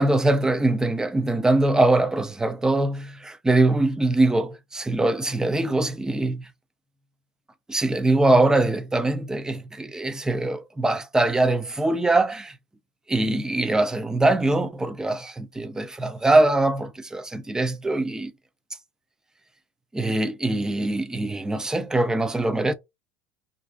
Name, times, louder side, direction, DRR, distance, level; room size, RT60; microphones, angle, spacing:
voice 1, 0.0-6.5 7.7-12.5 13.1-18.3 19.9-22.7, right 2 dB, 10° right, 0.3 m, -22 dB
2.5 x 2.3 x 2.2 m
supercardioid pair, 105°, 7 cm